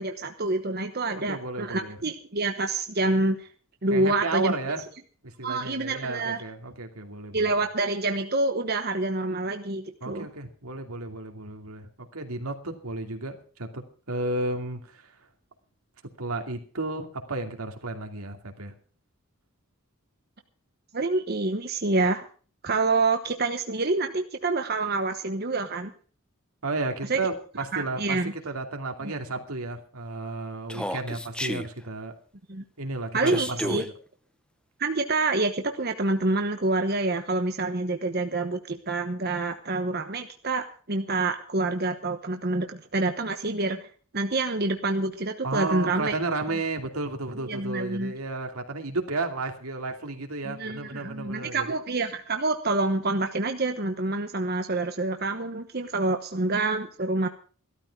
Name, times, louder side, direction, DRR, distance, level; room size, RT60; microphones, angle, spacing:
voice 1, 0.0-3.5 3.8-4.5 5.4-6.4 7.3-10.3 20.9-22.2 22.6-25.9 27.1-27.2 27.7-28.3 32.5-32.6 33.1-33.8 34.8-43.9 44.1-46.1 47.4-48.1 50.4-57.3, right 2 dB, 45° right, 6 dB, 1.1 m, -27 dB
voice 2, 1.1-2.0 3.9-4.8 5.2-7.5 10.0-15.2 16.2-18.7 26.6-32.1 32.8-33.9 45.4-51.7, right 2 dB, 85° right, 4 dB, 2.7 m, -33 dB
Human voice, 30.7-31.7 33.2-33.9, left 1 dB, 5° left, 0.7 m, -31 dB
15.5 x 13.0 x 4.7 m, 0.42 s
head